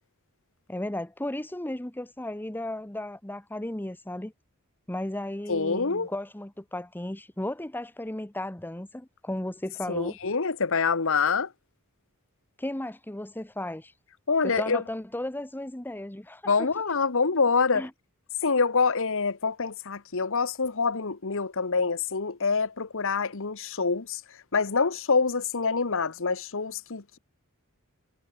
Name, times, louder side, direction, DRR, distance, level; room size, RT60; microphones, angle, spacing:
voice 1, 0.7-4.3 4.9-10.2 12.6-13.9 14.4-16.7 17.7-17.9, left 1 dB, 10° left, 0.9 m, -35 dB
voice 2, 5.5-6.1 9.9-11.5 14.3-14.8 16.4-17.9 18.4-24.2 24.5-27.2, left 4 dB, 65° left, 1.2 m, -26 dB
head